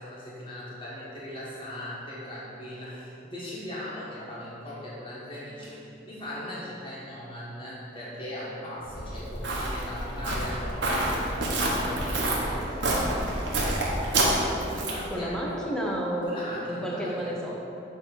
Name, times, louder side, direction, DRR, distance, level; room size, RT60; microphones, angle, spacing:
voice 1, 0.0-15.6 16.2-17.3, left 1 dB, 30° left, -8 dB, 1.3 m, -39 dB
Walk footsteps, 8.9-15.1, right 1 dB, 85° right, 1.1 m, -28 dB
voice 2, 15.1-16.3 16.7-17.6, equal, 5° left, -3 dB, 0.8 m, -30 dB
6.8 x 3.2 x 5.9 m, 2.7 s
head